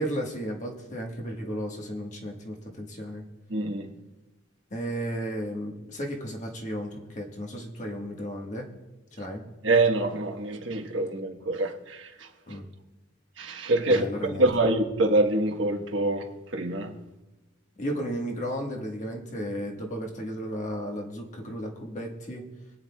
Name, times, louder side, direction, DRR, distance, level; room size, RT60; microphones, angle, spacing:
voice 1, 0.0-3.2 4.7-8.7 9.2-9.4 12.5-12.7 13.9-14.5 17.8-22.4, equal, 40° left, 1.5 m, -34 dB
voice 2, 3.5-3.9 9.6-12.3 13.4-16.3 16.5-16.9, right 2 dB, 70° right, 1.3 m, -25 dB
24.0 x 9.0 x 2.3 m
head